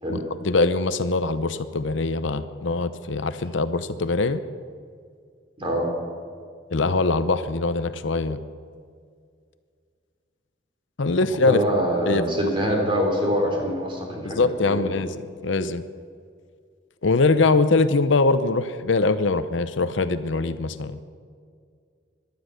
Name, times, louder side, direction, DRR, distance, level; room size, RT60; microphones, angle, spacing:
voice 1, 0.1-4.4 6.7-8.4 11.0-11.6 12.1-12.2 14.2-15.8 17.0-21.0, left 3 dB, 70° left, 12 dB, 0.7 m, -22 dB
voice 2, 5.6-5.9 11.5-14.9, equal, 25° right, 0 dB, 3.6 m, -24 dB
17.5 x 12.0 x 6.5 m, 2.1 s
head